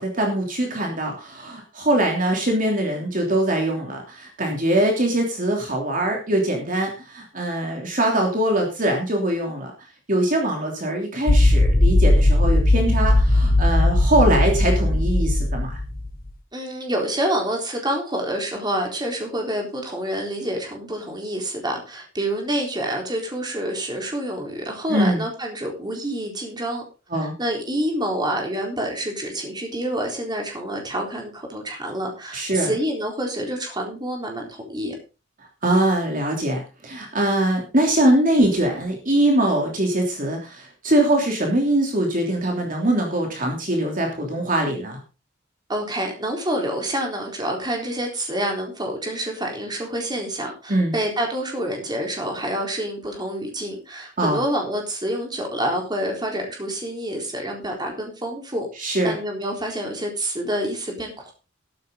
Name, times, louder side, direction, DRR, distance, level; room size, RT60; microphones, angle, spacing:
voice 1, 0.0-9.7 10.1-15.8 24.9-25.2 27.1-27.3 32.3-32.7 35.6-45.0 50.7-51.0 54.2-54.4 58.8-59.1, right 1 dB, 45° right, 1 dB, 3.1 m, -22 dB
sound 1, 11.3-16.1, left 1 dB, 50° left, 1.0 m, -18 dB
voice 2, 16.5-26.8 27.2-34.9 45.7-58.7 59.0-61.3, right 1 dB, 20° right, 2 dB, 3.9 m, -27 dB
13.0 x 12.0 x 3.8 m, 0.30 s
head